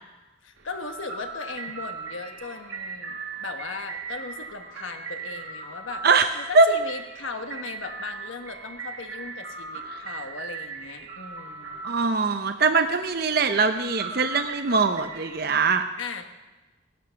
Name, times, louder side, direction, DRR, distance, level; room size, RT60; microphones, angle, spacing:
voice 1, 0.4-6.1 6.4-11.8 16.0-16.3, left 4 dB, 75° left, 6 dB, 1.3 m, -37 dB
sound 1, 0.6-15.5, right 4 dB, 75° right, 2.1 m, -39 dB
voice 2, 6.0-6.7 9.9-10.0 11.8-15.8, right 4 dB, 50° right, 7 dB, 0.6 m, -22 dB
18.0 x 11.5 x 5.7 m, 1.1 s
head